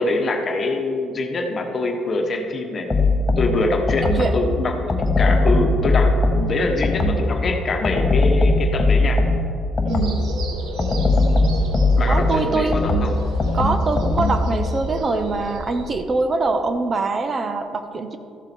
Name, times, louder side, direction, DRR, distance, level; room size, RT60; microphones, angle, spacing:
voice 1, 0.0-2.9 3.4-6.1 6.5-9.2 12.0-13.1, left 2 dB, 40° left, 3 dB, 1.3 m, -24 dB
sound 1, 2.9-4.4 4.9-7.4 7.8-10.3 10.8-14.6, left 2 dB, 25° left, 1.1 m, -19 dB
voice 2, 9.8-10.3 12.1-12.7 13.5-18.2, right 3 dB, 35° right, 8 dB, 0.7 m, -23 dB
sound 2, 9.9-15.9, right 2 dB, 80° right, 1.3 m, -33 dB
13.5 x 7.6 x 4.4 m, 2.4 s
cardioid pair, 115°, 0 cm